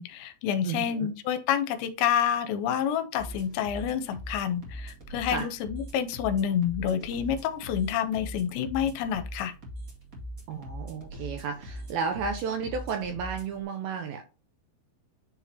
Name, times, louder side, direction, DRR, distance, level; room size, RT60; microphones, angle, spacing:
voice 1, 0.0-9.5, left 9 dB, 85° left, 3.0 m, -28 dB
voice 2, 0.6-1.1 5.3-5.5 10.5-14.2, right 5 dB, 75° right, 2.2 m, -32 dB
sound 1, 3.2-13.6, equal, 40° right, 1.2 m, -41 dB
10.0 x 4.1 x 2.8 m
omnidirectional pair, 5.1 m